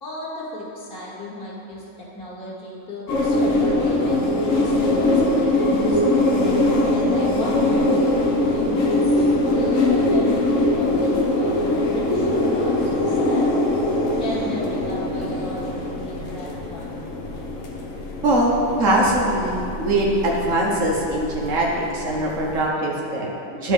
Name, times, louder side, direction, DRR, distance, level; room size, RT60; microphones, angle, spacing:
voice 1, 0.0-6.3 6.9-9.2 9.5-13.5 14.2-17.0, left 1 dB, 40° left, -10 dB, 1.7 m, -35 dB
sound 1, 3.1-22.7, left 1 dB, 70° left, 1.2 m, -22 dB
voice 2, 18.2-23.7, right 1 dB, 65° right, -2 dB, 1.3 m, -22 dB
10.5 x 3.5 x 5.0 m, 2.8 s
omnidirectional pair, 1.4 m